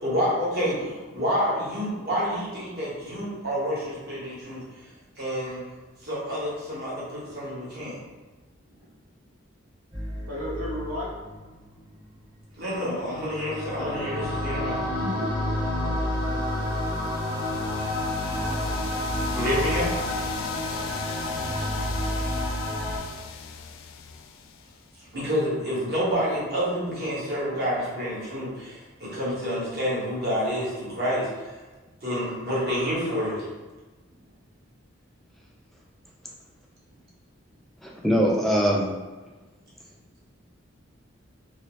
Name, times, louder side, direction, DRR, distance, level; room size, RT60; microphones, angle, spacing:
voice 1, 0.0-4.6 5.2-5.6 6.0-8.0 12.6-14.8 19.3-20.0 25.1-31.5 32.0-33.5, equal, 50° right, -7 dB, 1.2 m, -28 dB
sound 1, 9.9-12.0 13.1-23.0, left 1 dB, 20° right, 0.9 m, -29 dB
voice 2, 10.3-11.1 14.6-15.4 34.1-34.2, left 1 dB, 85° right, -5 dB, 1.0 m, -34 dB
sound 2, 16.3-25.0, left 6 dB, 80° left, 0.3 m, -39 dB
voice 3, 37.8-38.9, equal, ahead, -2 dB, 0.4 m, -22 dB
3.1 x 3.0 x 3.0 m, 1.3 s
head